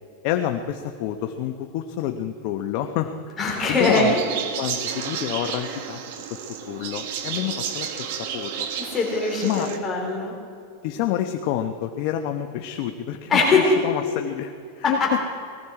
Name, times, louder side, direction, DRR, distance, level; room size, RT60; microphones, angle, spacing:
voice 1, 0.2-3.4 3.7-4.1 4.6-8.7 9.4-9.7 10.8-15.2, left 11 dB, 50° left, 6 dB, 0.8 m, -28 dB
voice 2, 3.4-4.2 8.9-10.3 13.3-13.6 15.0-15.1, left 3 dB, 20° left, -2 dB, 4.2 m, -21 dB
sound 1, 3.8-9.8, right 8 dB, 60° right, 1.4 m, -32 dB
19.0 x 15.0 x 4.8 m, 2.3 s
supercardioid pair, 150°, 0 cm